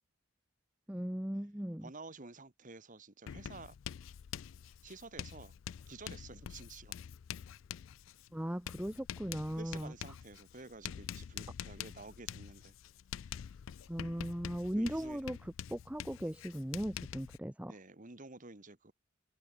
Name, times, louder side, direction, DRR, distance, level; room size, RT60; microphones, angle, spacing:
voice 1, 0.9-1.9 8.3-9.9 13.9-17.7, equal, 5° right, 0.7 m, -38 dB
voice 2, 1.8-3.8 4.8-5.5 5.9-6.9 9.6-12.7 14.7-15.2 17.7-18.9, right 3 dB, 40° right, 1.7 m, -51 dB
Writing, 3.3-17.4, left 9 dB, 65° left, 0.4 m, -46 dB
head